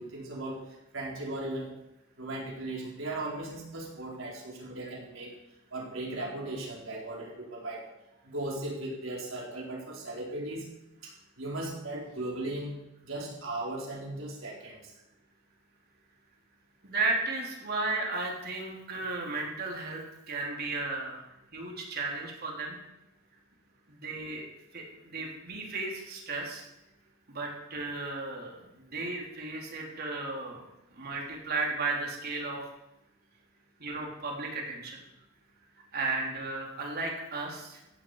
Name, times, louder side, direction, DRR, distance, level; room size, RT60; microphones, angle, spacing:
voice 1, 0.0-1.7 2.2-5.3 5.7-7.8 8.2-10.7 11.0-11.1 11.4-12.8 13.0-14.9, right 2 dB, 70° right, -3 dB, 5.0 m, -37 dB
voice 2, 16.8-22.8 23.9-24.4 24.7-26.6 27.3-30.6 30.9-32.7 33.8-35.0 35.9-37.8, right 3 dB, 50° right, -1 dB, 4.0 m, -34 dB
15.5 x 15.5 x 5.1 m, 0.92 s
head